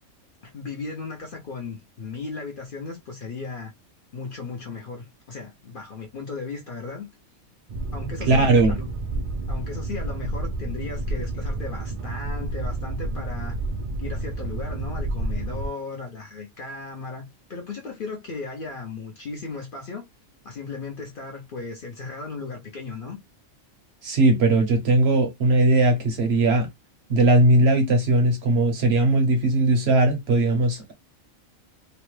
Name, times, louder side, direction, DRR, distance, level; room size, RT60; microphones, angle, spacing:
voice 1, 0.4-3.7 4.1-7.1 7.9-8.9 9.5-13.6 14.0-20.0 20.4-23.2, left 4 dB, 55° left, 0.6 m, -36 dB
Boat Water vehicle, 7.7-15.7, right 2 dB, 85° right, 0.4 m, -30 dB
voice 2, 8.3-8.7 24.0-26.7 27.1-30.9, right 2 dB, 60° right, 0.8 m, -19 dB
2.9 x 2.1 x 3.1 m
omnidirectional pair, 1.4 m